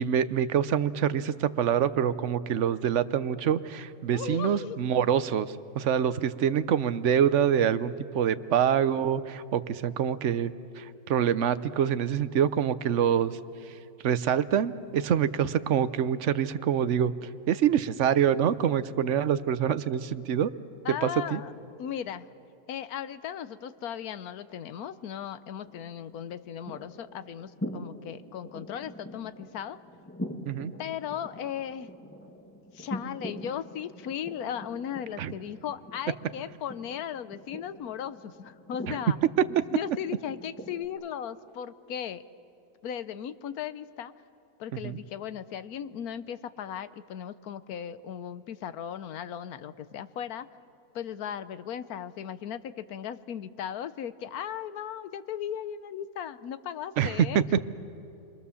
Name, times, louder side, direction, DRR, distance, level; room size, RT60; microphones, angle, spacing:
voice 1, 0.0-13.4 14.0-20.5 21.0-21.4 30.5-30.7 35.2-35.3 38.9-39.0 44.8-45.0 57.0-57.6, right 9 dB, 60° right, 14 dB, 1.0 m, -26 dB
voice 2, 4.1-4.8 20.8-21.5 21.8-22.3 22.7-29.8 30.8-31.9 32.7-39.2 39.7-42.2 42.8-44.1 44.6-50.5 50.9-57.6, left 9 dB, 80° left, 14 dB, 1.3 m, -37 dB
sound 1, 25.6-40.9, left 1 dB, 10° left, 1.2 m, -43 dB
29.0 x 23.5 x 7.1 m, 2.6 s
omnidirectional pair, 1.6 m